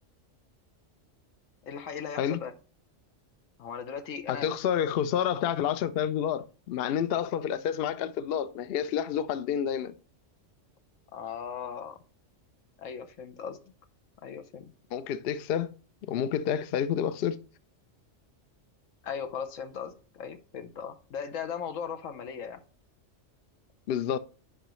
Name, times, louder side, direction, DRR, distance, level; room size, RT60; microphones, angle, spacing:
voice 1, 1.6-2.5 3.6-4.5 11.1-12.0 12.8-13.6 14.2-14.6 19.0-22.6, left 7 dB, 90° left, 1.2 m, -38 dB
voice 2, 4.3-9.9 14.9-15.7 16.1-17.4 23.9-24.2, left 9 dB, 60° left, 0.7 m, -29 dB
10.0 x 5.0 x 3.1 m
omnidirectional pair, 1.3 m